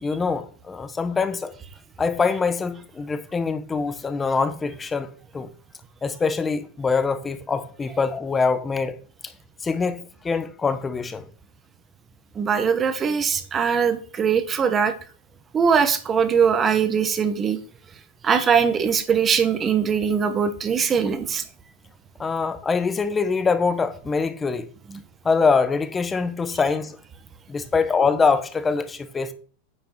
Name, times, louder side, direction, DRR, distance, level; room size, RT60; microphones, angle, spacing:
voice 1, 0.0-1.5 2.0-5.1 5.3-5.5 6.0-9.0 9.2-9.3 9.6-11.2 22.2-24.7 25.2-27.0 27.5-29.3, left 5 dB, 15° left, 0.9 m, -24 dB
voice 2, 12.3-14.9 15.5-17.6 18.2-21.4 24.9-25.0, right 6 dB, 25° right, 1.1 m, -21 dB
9.4 x 5.1 x 4.5 m
supercardioid pair, 130°, 0 cm